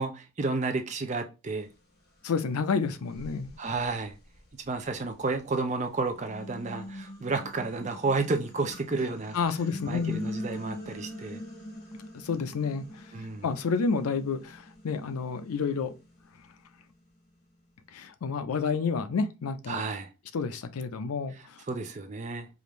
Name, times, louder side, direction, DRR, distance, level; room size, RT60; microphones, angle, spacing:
voice 1, 0.0-1.7 3.6-4.1 4.7-9.4 9.9-11.4 13.1-13.4 19.7-20.1 21.7-22.5, right 3 dB, 35° right, 0.4 m, -31 dB
voice 2, 2.2-3.5 9.3-10.2 12.1-13.1 13.4-15.9 17.9-19.8 20.3-21.6, left 5 dB, 90° left, 0.5 m, -30 dB
sound 1, 2.4-2.5 3.1-5.4 5.9-17.2, left 1 dB, 45° left, 1.2 m, -43 dB
4.9 x 2.5 x 3.0 m
head